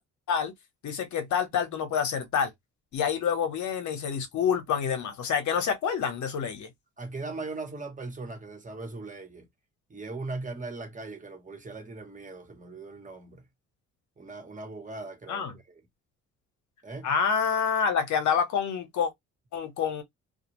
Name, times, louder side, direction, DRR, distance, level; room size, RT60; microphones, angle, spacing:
voice 1, 0.8-2.5 2.9-6.7 15.3-15.5 17.0-19.1 19.5-20.0, left 7 dB, 70° left, 0.9 m, -27 dB
voice 2, 7.0-9.5 9.9-13.5 14.2-15.8 16.8-17.1, right 3 dB, 25° right, 1.1 m, -39 dB
2.4 x 2.4 x 2.9 m
cardioid pair, 90°, 30 cm